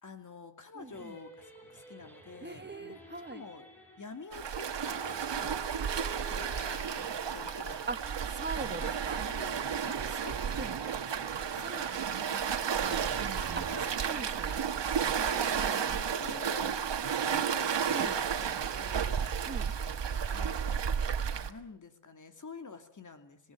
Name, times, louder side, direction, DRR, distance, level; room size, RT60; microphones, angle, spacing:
voice 1, 0.0-3.7 4.0-8.1 8.7-9.0 9.2-9.6 10.1-10.4 11.6-14.0 15.1-17.0 17.2-19.2 20.0-20.9 21.3-23.5, left 4 dB, 45° left, 7 dB, 2.6 m, -49 dB
sound 1, 0.8-11.9, right 1 dB, 5° left, 7.0 m, -52 dB
voice 2, 0.8-1.1 2.4-3.4 7.9-8.0 8.3-9.3 9.9-10.2 10.6-10.8 11.6-11.9 13.6-13.7 14.0-14.6 15.3-16.0 17.9-18.1 19.4-19.7, right 3 dB, 25° right, 10 dB, 1.4 m, -41 dB
Waves surf, 4.3-21.5, right 7 dB, 80° right, 1.6 m, -32 dB
sound 2, 12.8-15.1, right 6 dB, 60° right, 2.0 m, -43 dB
27.0 x 17.5 x 9.1 m, 0.69 s
wide cardioid pair, 165°, 42 cm